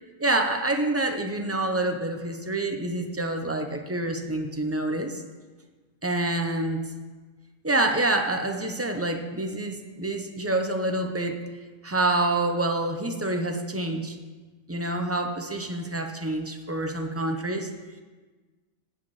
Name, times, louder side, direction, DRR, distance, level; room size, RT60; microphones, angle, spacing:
voice 1, 0.2-5.2 6.0-6.8 7.6-11.4 11.8-14.2 14.7-17.7, right 2 dB, 20° right, 4 dB, 0.4 m, -27 dB
16.0 x 8.9 x 3.2 m, 1.3 s
omnidirectional pair, 1.7 m